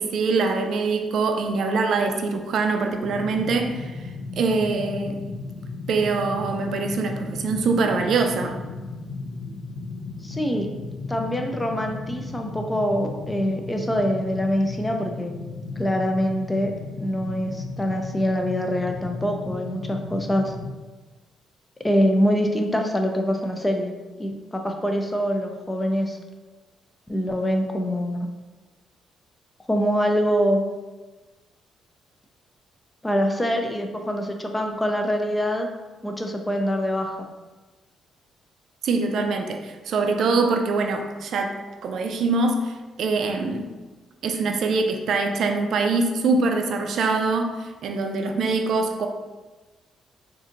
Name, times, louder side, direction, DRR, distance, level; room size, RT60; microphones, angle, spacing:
voice 1, 0.0-3.9 4.4-5.2 5.9-8.6 38.8-41.6 41.8-43.7 44.2-49.1, right 3 dB, 65° right, 5 dB, 0.3 m, -24 dB
sound 1, 3.0-20.7, left 3 dB, 70° left, 0.6 m, -35 dB
voice 2, 10.2-10.7 11.1-15.3 15.8-20.5 21.8-23.9 24.2-26.2 27.1-28.3 29.7-30.6 33.0-35.7 36.0-37.3, equal, 15° left, 4 dB, 0.4 m, -24 dB
4.0 x 2.5 x 2.5 m, 1.2 s
cardioid pair, 90°, 0 cm